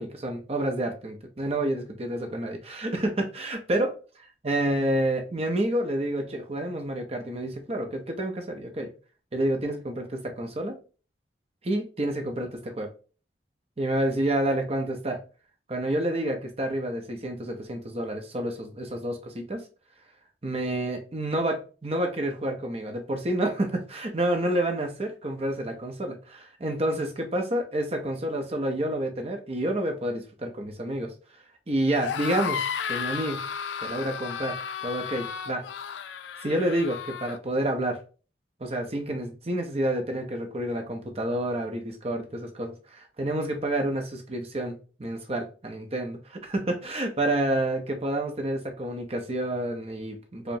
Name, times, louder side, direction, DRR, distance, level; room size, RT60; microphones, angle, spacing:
voice 1, 0.0-3.9 4.4-8.9 9.3-10.8 11.6-12.9 13.8-15.2 15.7-19.6 20.4-31.1 31.7-33.4 33.8-35.6 36.4-38.0 38.6-50.6, right 1 dB, 35° right, 0.7 m, -29 dB
sound 1, 31.9-37.4, left 7 dB, 80° left, 0.4 m, -33 dB
4.9 x 2.2 x 2.7 m
head